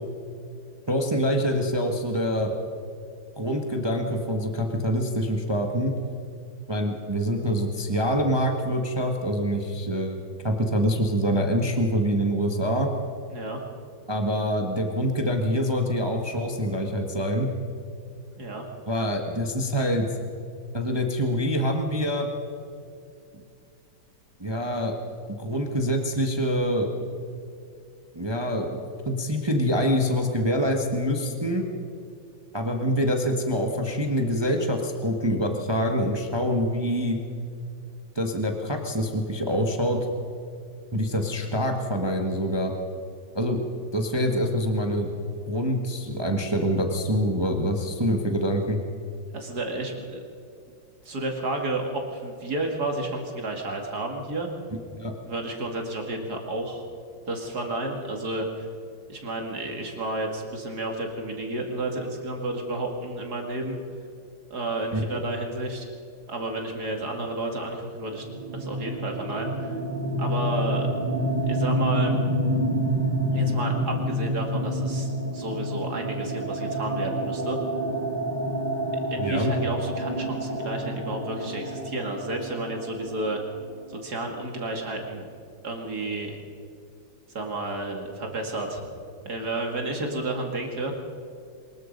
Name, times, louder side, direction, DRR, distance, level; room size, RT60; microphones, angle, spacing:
voice 1, 0.9-2.5 3.4-5.9 6.7-12.9 14.1-17.5 18.9-20.1 20.7-22.3 24.4-24.9 25.3-26.9 28.1-28.8 29.0-31.6 32.5-37.2 38.1-40.0 40.9-42.7 43.3-43.6 43.9-45.1 45.5-48.8 55.0-55.1 64.9-65.1 79.2-79.5, equal, 15° right, 3 dB, 1.4 m, -25 dB
voice 2, 49.3-50.2 51.0-51.8 52.1-54.5 55.2-56.8 57.3-58.7 59.1-63.8 64.5-65.9 66.3-68.3 68.5-69.7 70.2-70.9 71.5-72.1 73.3-77.6 79.1-83.4 83.9-85.3 85.6-86.4 87.3-88.8 89.2-90.9, right 2 dB, 55° right, 2 dB, 2.7 m, -31 dB
sound 1, 68.2-83.8, equal, 40° right, 7.2 m, -28 dB
23.5 x 21.0 x 5.4 m, 2.5 s
omnidirectional pair, 2.1 m